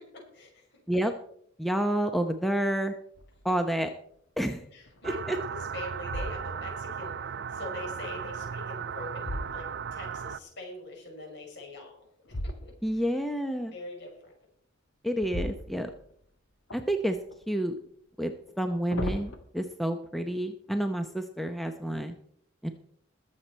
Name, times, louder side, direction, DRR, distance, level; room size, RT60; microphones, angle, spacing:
voice 1, 0.1-0.8 4.7-11.9 12.3-13.0 13.7-14.3, left 2 dB, 60° left, 0 dB, 5.7 m, -43 dB
voice 2, 1.6-2.9 3.4-3.9 4.4-4.6 5.0-5.4 12.8-13.7 15.0-15.9 16.7-17.2 17.5-17.7 18.2-18.3 18.6-22.2 22.6-22.7, right 1 dB, ahead, 6 dB, 0.7 m, -29 dB
sound 1, 3.1-3.6 4.1-4.2 4.8-5.4 6.0-6.9 8.5-10.2 12.3-13.1 15.2-16.3 16.7-17.4 18.5-19.4, equal, 80° left, 1.8 m, -38 dB
sound 2, 5.0-10.4, right 6 dB, 60° right, 0.5 m, -36 dB
21.0 x 7.5 x 4.4 m, 0.65 s
head